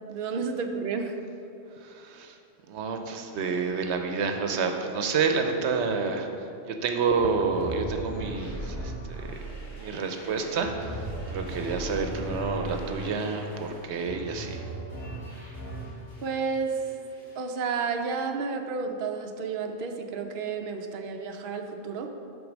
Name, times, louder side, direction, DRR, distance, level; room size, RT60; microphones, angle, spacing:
voice 1, 0.1-1.2 16.2-16.8 17.4-22.1, right 5 dB, 60° right, 4 dB, 0.7 m, -31 dB
voice 2, 1.8-2.4 2.7-6.3 6.6-9.4 9.8-14.6, right 5 dB, 85° right, 5 dB, 0.9 m, -29 dB
sound 1, 7.2-16.3 16.7-17.5, right 1 dB, 80° left, 2.2 m, -37 dB
8.1 x 3.9 x 6.1 m, 2.8 s
omnidirectional pair, 1.1 m